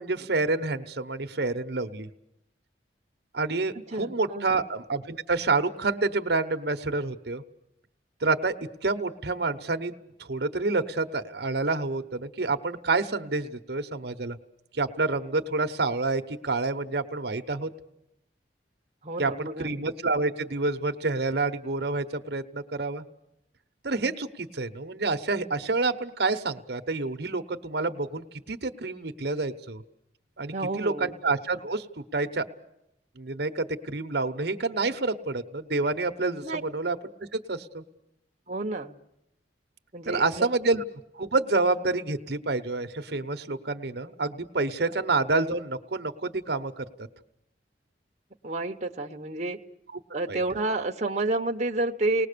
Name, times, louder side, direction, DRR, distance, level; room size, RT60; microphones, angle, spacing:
voice 1, 0.0-2.1 3.3-7.4 8.2-8.5 8.8-9.9 10.2-14.4 14.7-17.7 19.2-23.0 23.8-29.8 30.4-31.9 32.1-32.4 33.2-37.0 37.3-37.8 40.1-40.8 41.1-46.8 50.3-50.4, right 3 dB, 65° right, 8 dB, 1.1 m, -28 dB
voice 2, 3.9-4.6 19.0-19.9 30.5-31.2 36.4-36.6 38.5-39.0 39.9-40.5 44.9-45.0 48.4-49.6 50.1-52.3, right 2 dB, 40° right, 2 dB, 1.0 m, -30 dB
29.5 x 19.5 x 6.8 m, 0.83 s
head